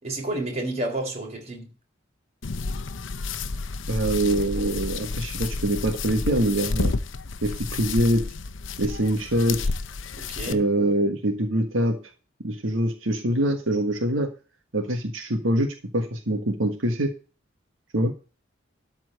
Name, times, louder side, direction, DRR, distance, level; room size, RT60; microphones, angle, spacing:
voice 1, 0.0-1.7 10.1-10.6, right 1 dB, 35° right, 3.9 m, -30 dB
sound 1, 2.4-10.5, left 3 dB, 65° left, 0.8 m, -31 dB
voice 2, 3.9-6.9 7.4-8.2 8.8-9.6 10.5-12.0 12.4-14.3 14.7-17.1 17.9-18.1, right 1 dB, 70° right, 1.6 m, -24 dB
13.0 x 4.5 x 7.8 m
head